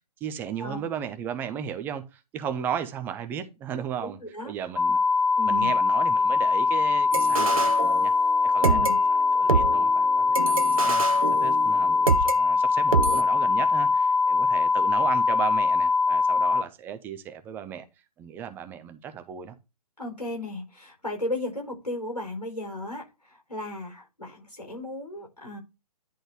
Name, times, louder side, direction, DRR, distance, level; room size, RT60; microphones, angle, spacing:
voice 1, 0.2-4.2 4.4-5.0 5.4-8.1 8.4-9.0 9.3-11.0 11.4-17.9 18.2-19.5, right 8 dB, 10° right, 0.6 m, -35 dB
voice 2, 4.2-4.5 5.4-5.7 8.6-9.0 20.0-23.0 23.5-25.6, left 1 dB, 85° left, 4.5 m, -34 dB
sound 1, 4.8-16.6, left 4 dB, 70° left, 0.5 m, -22 dB
sound 2, 7.1-8.3 8.6-12.4 12.9-13.2, right 5 dB, 60° right, 0.9 m, -27 dB
10.0 x 3.9 x 4.7 m
figure-of-eight pair, 130°, 20 cm